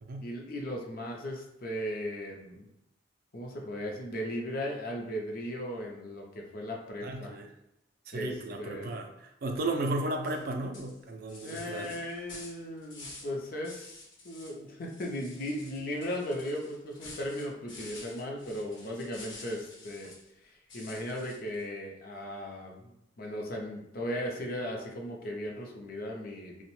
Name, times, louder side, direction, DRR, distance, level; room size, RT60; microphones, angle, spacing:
voice 1, 0.2-2.7 3.3-7.4 8.1-8.3 8.6-8.9 11.4-14.0 14.2-20.1 20.4-26.6, equal, 50° left, 0 dB, 0.5 m, -37 dB
voice 2, 7.0-7.5 8.1-11.9, right 2 dB, 50° right, 4 dB, 0.4 m, -34 dB
sound 1, 10.2-10.4 10.7-13.3 13.6-14.6 14.8-20.3 20.7-21.6, left 2 dB, 85° left, 0.9 m, -49 dB
2.8 x 2.1 x 3.0 m, 0.85 s
head